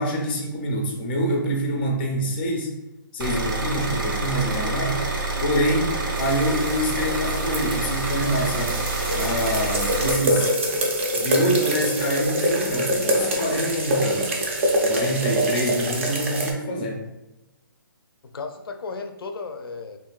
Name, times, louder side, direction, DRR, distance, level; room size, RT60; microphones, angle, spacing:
voice 1, 0.0-2.8 3.1-5.0 5.4-8.8 9.1-10.5 11.2-14.4 14.9-17.1, equal, 25° left, 1 dB, 0.5 m, -26 dB
sound 1, 3.2-10.1, right 3 dB, 60° right, 0.7 m, -27 dB
sound 2, 6.1-16.5, right 1 dB, 35° right, 0.4 m, -25 dB
voice 2, 10.3-10.9 18.2-20.0, left 4 dB, 85° left, 6 dB, 0.4 m, -35 dB
3.0 x 2.5 x 2.3 m, 0.96 s
hypercardioid pair, 165°, 12 cm